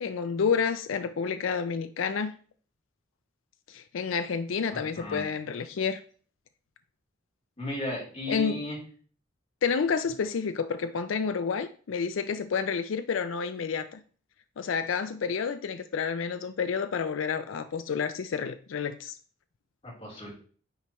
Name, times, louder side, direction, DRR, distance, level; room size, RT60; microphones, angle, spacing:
voice 1, 0.0-2.3 3.7-6.0 8.3-8.6 9.6-14.0 14.6-19.1, left 6 dB, 70° left, 0.4 m, -29 dB
voice 2, 4.7-5.2 7.6-8.8 19.8-20.3, left 1 dB, 30° left, 3.3 m, -35 dB
9.5 x 4.3 x 3.0 m
head